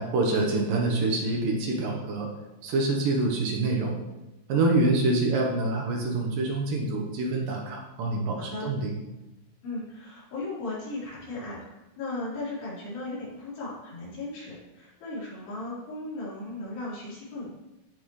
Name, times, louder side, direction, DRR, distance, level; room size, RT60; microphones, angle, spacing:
voice 1, 0.0-2.3 2.6-4.0 4.5-8.9, right 2 dB, 65° right, 0 dB, 2.6 m, -26 dB
voice 2, 4.5-4.8 8.4-8.7 9.6-17.5, left 2 dB, 85° left, -9 dB, 6.2 m, -36 dB
15.0 x 6.2 x 3.2 m, 1.0 s
omnidirectional pair, 4.6 m